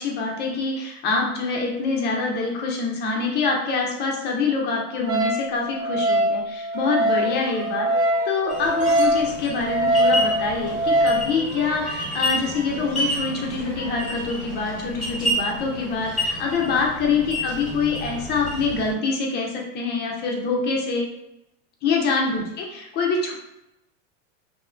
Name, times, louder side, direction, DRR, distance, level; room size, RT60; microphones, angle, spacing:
voice 1, 0.0-7.9 8.2-21.1 21.8-23.3, left 4 dB, 30° left, -1 dB, 0.4 m, -25 dB
Wind instrument woodwind instrument, 5.1-11.2, right 1 dB, 65° right, 0.7 m, -23 dB
sound 1, 6.7-14.2, right 1 dB, 30° right, 0.8 m, -40 dB
sound 2, 8.5-18.9, equal, ahead, 1.0 m, -30 dB
2.9 x 2.1 x 2.4 m, 0.88 s
supercardioid pair, 130°, 37 cm